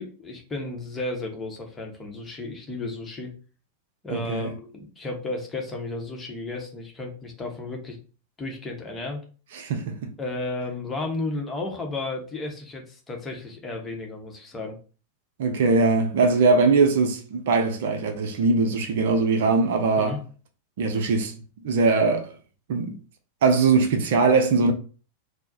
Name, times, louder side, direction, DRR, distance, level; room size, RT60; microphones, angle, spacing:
voice 1, 0.0-3.3 4.0-8.0 8.4-9.2 10.2-14.8 20.0-20.2, left 2 dB, 15° left, 0.9 m, -33 dB
voice 2, 4.1-4.5 9.5-9.9 15.4-20.2 20.8-21.3 21.6-22.3 22.7-23.0 23.4-24.7, right 4 dB, 55° right, 0.6 m, -21 dB
4.4 x 2.1 x 2.6 m
figure-of-eight pair, 90°, 0 cm